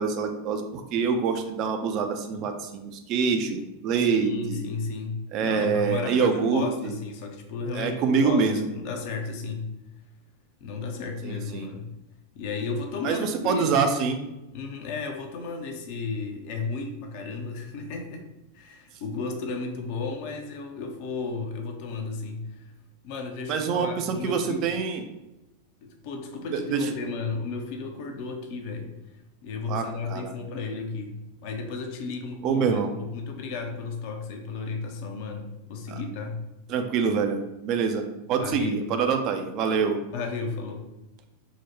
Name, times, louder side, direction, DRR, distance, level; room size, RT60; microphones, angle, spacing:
voice 1, 0.0-4.7 5.3-6.9 7.7-8.6 11.2-11.7 13.0-14.2 23.5-25.0 26.5-26.9 29.7-30.3 32.4-32.9 35.9-36.0 36.7-40.0, right 5 dB, 40° right, 6 dB, 0.4 m, -25 dB
voice 2, 4.0-9.7 10.6-11.9 12.3-13.8 14.5-18.2 18.5-22.7 23.0-24.7 25.8-28.9 29.4-36.4 38.4-38.8 40.1-40.9, left 4 dB, 45° left, 4 dB, 0.5 m, -34 dB
3.8 x 2.1 x 3.0 m, 0.93 s
figure-of-eight pair, 90°, 0 cm